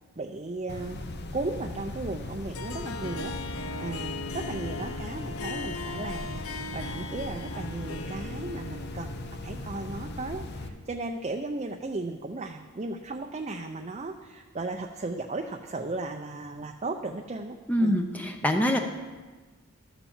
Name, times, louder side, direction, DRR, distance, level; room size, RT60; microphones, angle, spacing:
voice 1, 0.2-1.0 1.3-3.3 3.8-18.0, right 2 dB, 30° right, 3 dB, 0.5 m, -36 dB
sound 1, 0.7-10.7, left 2 dB, 50° left, 0.8 m, -38 dB
Harp, 2.5-11.0, left 3 dB, 85° left, 0.8 m, -39 dB
voice 2, 17.7-18.8, equal, 5° left, 4 dB, 0.6 m, -24 dB
13.0 x 7.1 x 7.2 m, 1.3 s
head